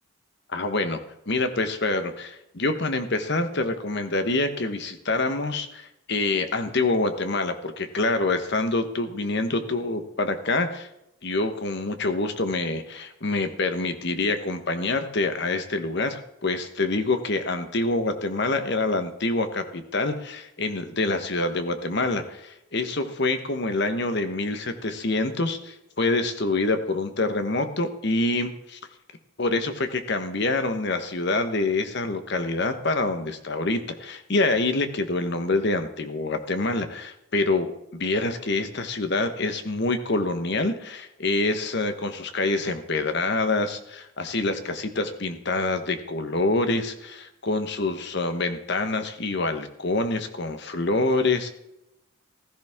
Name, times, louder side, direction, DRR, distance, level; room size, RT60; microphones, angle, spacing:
voice 1, 0.5-1.0 1.3-10.9 11.2-28.8 29.4-51.5, left 2 dB, 50° left, 8 dB, 1.3 m, -26 dB
15.5 x 14.0 x 3.7 m, 0.84 s
head